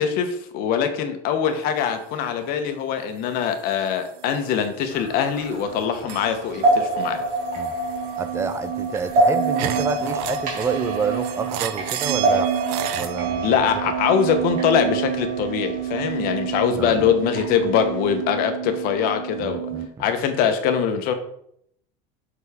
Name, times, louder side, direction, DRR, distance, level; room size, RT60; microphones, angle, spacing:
voice 1, 0.0-7.2 13.4-19.6 20.0-21.1, left 7 dB, 55° left, 7 dB, 0.9 m, -23 dB
sound 1, 4.2-5.1 5.3-19.9, right 10 dB, 65° right, 0.6 m, -30 dB
sound 2, 4.9-18.2, right 2 dB, 45° right, 2.2 m, -27 dB
voice 2, 8.2-12.6 12.9-13.5 16.8-17.1 19.4-20.0, right 5 dB, 15° right, 11 dB, 0.4 m, -29 dB
6.6 x 4.0 x 3.5 m, 0.71 s
supercardioid pair, 135°, 19 cm